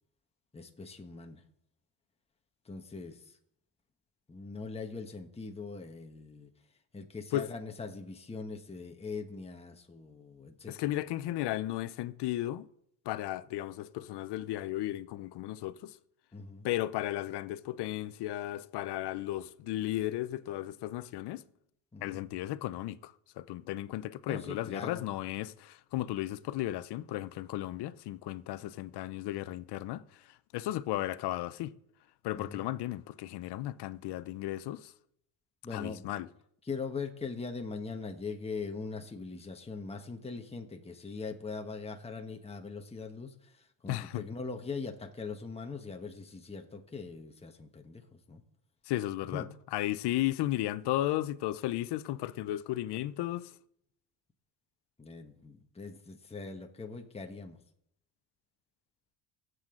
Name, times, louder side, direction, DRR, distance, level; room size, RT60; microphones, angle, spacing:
voice 1, 0.5-1.4 2.6-3.2 4.3-6.5 6.9-10.9 16.3-16.7 21.9-22.2 24.3-25.0 32.3-32.7 35.6-36.1 36.6-48.4 49.3-49.5 55.0-57.6, left 4 dB, 15° left, 1.3 m, -41 dB
voice 2, 10.7-12.7 13.1-16.0 16.6-21.4 22.0-30.0 30.5-31.7 32.2-34.9 35.7-36.3 43.9-44.2 48.9-49.5 49.7-53.5, left 14 dB, 70° left, 0.8 m, -34 dB
19.0 x 8.0 x 3.8 m
cardioid pair, 100°, 41 cm